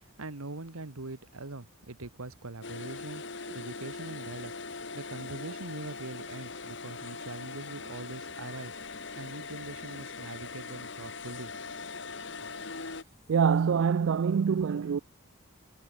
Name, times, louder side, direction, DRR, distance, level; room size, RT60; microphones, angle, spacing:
voice 1, 0.2-3.2 3.5-4.5 4.9-8.8 9.1-11.5, right 2 dB, 90° right, 1.6 m, -42 dB
sound 1, 2.6-13.0, left 4 dB, 55° left, 1.8 m, -41 dB
sound 2, 8.6-13.6, left 3 dB, 30° left, 7.9 m, -65 dB
voice 2, 13.3-15.0, right 6 dB, 65° right, 0.3 m, -25 dB
head